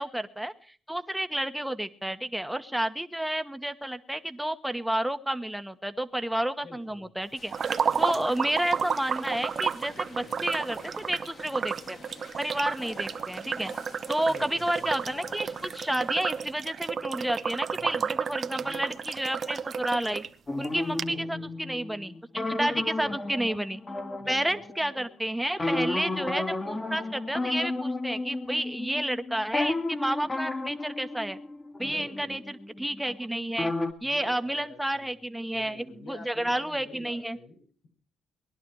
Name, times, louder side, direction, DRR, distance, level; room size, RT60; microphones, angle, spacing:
voice 1, 0.0-7.5 8.0-12.0 12.4-13.7 14.1-20.2 20.6-23.8 24.3-31.4 31.8-33.7 34.0-37.4, right 1 dB, 5° right, 10 dB, 1.3 m, -31 dB
voice 2, 6.6-7.1 7.9-8.2 14.3-15.1 17.8-18.0 18.6-18.9 21.1-21.5 22.7-23.1 24.2-24.6 31.8-32.4 34.0-35.2 35.5-37.9, left 3 dB, 85° left, 0 dB, 6.9 m, -48 dB
sound 1, 7.3-16.5, left 4 dB, 50° left, 3.2 m, -48 dB
sound 2, 7.5-20.3 20.6-20.7 21.0-21.1, right 6 dB, 50° right, 0.8 m, -32 dB
sound 3, 20.5-25.1 25.6-33.3 33.6-33.9, left 2 dB, 25° left, 1.9 m, -33 dB
20.5 x 11.5 x 4.8 m, 0.43 s
cardioid pair, 90°, 0 cm